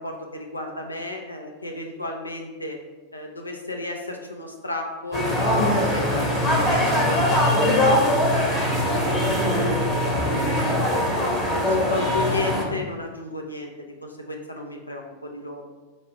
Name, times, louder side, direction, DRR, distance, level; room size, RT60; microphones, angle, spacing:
voice 1, 0.0-2.8 3.1-10.8 11.6-15.6, left 2 dB, 80° left, 2 dB, 0.4 m, -33 dB
sound 1, 5.1-12.6, left 1 dB, 15° left, 0.9 m, -21 dB
4.5 x 2.1 x 4.6 m, 1.2 s
figure-of-eight pair, 90°, 0 cm